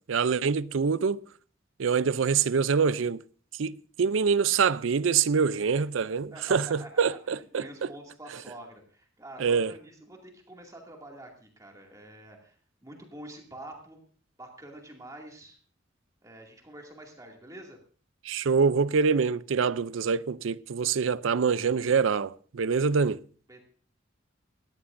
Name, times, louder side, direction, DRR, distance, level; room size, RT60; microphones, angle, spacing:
voice 1, 0.1-1.2 1.8-3.2 3.6-7.9 9.4-9.7 18.3-23.2, right 5 dB, 80° right, 0.5 m, -25 dB
voice 2, 6.3-12.6 12.8-14.0 14.4-15.6 16.2-17.8 23.5-23.6, right 1 dB, 15° right, 2.3 m, -47 dB
19.5 x 14.5 x 2.6 m
head